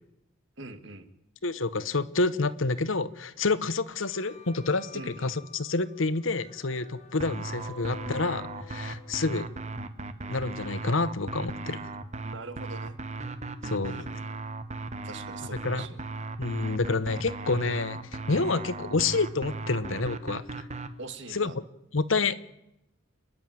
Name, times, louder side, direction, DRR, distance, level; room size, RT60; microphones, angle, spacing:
voice 1, 0.6-1.1 4.9-5.4 12.2-13.0 13.6-14.2 15.0-16.0 18.5-18.6 21.0-21.6, right 3 dB, 65° right, 10 dB, 1.9 m, -43 dB
voice 2, 1.4-9.5 10.3-11.8 13.7-14.0 15.6-15.8 16.4-18.0 18.3-20.6 21.3-21.5 21.9-22.4, left 3 dB, 75° left, 15 dB, 1.1 m, -28 dB
sound 1, 3.9-9.2, left 3 dB, 35° left, 4.6 m, -49 dB
sound 2, 7.2-20.9, right 3 dB, 35° right, 1.3 m, -37 dB
29.5 x 11.0 x 9.3 m, 0.85 s
head